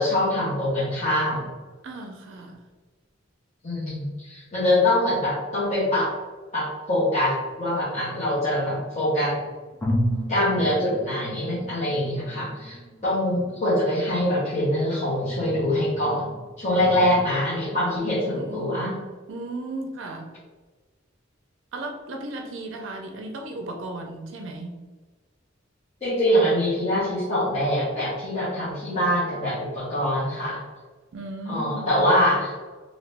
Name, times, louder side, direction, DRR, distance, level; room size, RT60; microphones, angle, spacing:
voice 1, 0.0-1.4 3.6-6.1 6.5-9.4 10.3-12.8 13.0-16.3 16.6-18.9 26.0-30.6 31.5-32.5, left 1 dB, 35° left, -10 dB, 0.9 m, -24 dB
voice 2, 1.8-2.6 18.3-19.0 19.3-20.3 21.7-24.8 31.1-32.0, right 2 dB, 65° right, 3 dB, 0.4 m, -35 dB
sound 1, 7.4-8.7 9.3-9.4 9.8-17.3, equal, 5° left, 0.5 m, -34 dB
2.9 x 2.6 x 3.3 m, 1.3 s
head